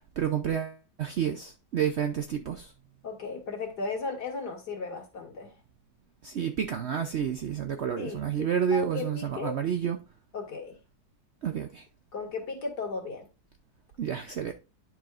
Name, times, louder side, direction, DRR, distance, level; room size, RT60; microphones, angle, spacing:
voice 1, 0.2-2.7 6.2-10.0 11.4-11.9 14.0-14.5, right 8 dB, 75° right, 0.6 m, -30 dB
voice 2, 3.0-5.5 8.0-9.6 10.3-10.8 12.1-13.3, left 4 dB, 65° left, 2.5 m, -36 dB
11.0 x 4.8 x 2.4 m
omnidirectional pair, 1.9 m